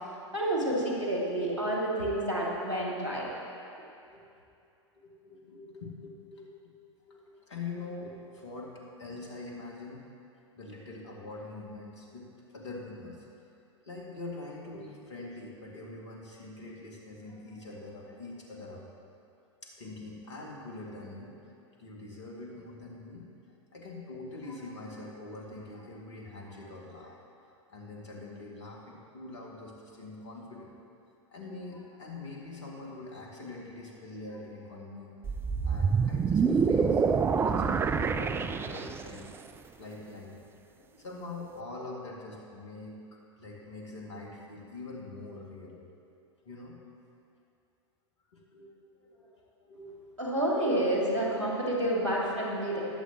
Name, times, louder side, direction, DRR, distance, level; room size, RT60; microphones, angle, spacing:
voice 1, 0.3-3.3 50.2-52.8, right 1 dB, 85° right, -4 dB, 2.5 m, -29 dB
voice 2, 5.0-6.5 7.1-10.0 10.6-12.3 12.5-13.3 13.8-18.8 19.6-21.3 21.8-23.3 23.7-27.2 27.7-30.7 31.3-35.2 35.6-37.1 37.4-39.3 39.8-40.3 40.8-45.8 46.4-46.8 48.3-50.7, left 2 dB, 70° left, -2 dB, 2.4 m, -44 dB
sound 1, 35.2-39.2, right 5 dB, 15° right, 0.4 m, -26 dB
20.5 x 8.2 x 3.1 m, 2.6 s
figure-of-eight pair, 90°, 15 cm